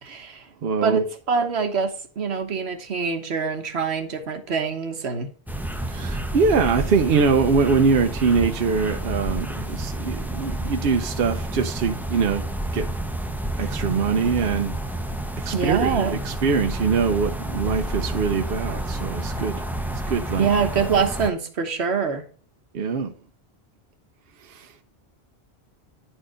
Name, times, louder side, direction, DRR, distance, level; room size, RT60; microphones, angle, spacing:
voice 1, 0.0-0.4 0.8-5.3 15.5-16.2 20.4-22.2, right 5 dB, 80° right, 1.4 m, -25 dB
voice 2, 0.6-1.0 5.9-12.5 12.7-12.9 13.6-14.7 15.4-19.6 20.1-20.5 22.7-23.1 24.5-24.7, right 5 dB, 65° right, 0.9 m, -23 dB
sound 1, 5.5-21.3, right 1 dB, ahead, 0.6 m, -30 dB
10.0 x 4.5 x 5.0 m
omnidirectional pair, 1.1 m